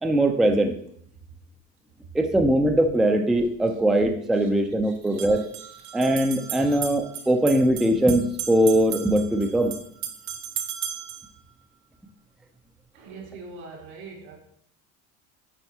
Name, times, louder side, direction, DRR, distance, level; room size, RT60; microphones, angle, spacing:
voice 1, 0.0-0.7 2.1-5.5 5.9-9.7, right 1 dB, ahead, 5 dB, 0.4 m, -21 dB
sound 1, 3.4-3.5 5.0-11.3, right 9 dB, 60° right, 0.8 m, -35 dB
voice 2, 4.8-6.0 6.6-6.8 7.1-7.3 12.9-14.4, right 4 dB, 80° right, -1 dB, 2.0 m, -44 dB
9.1 x 4.4 x 2.8 m, 0.67 s
supercardioid pair, 125°, 32 cm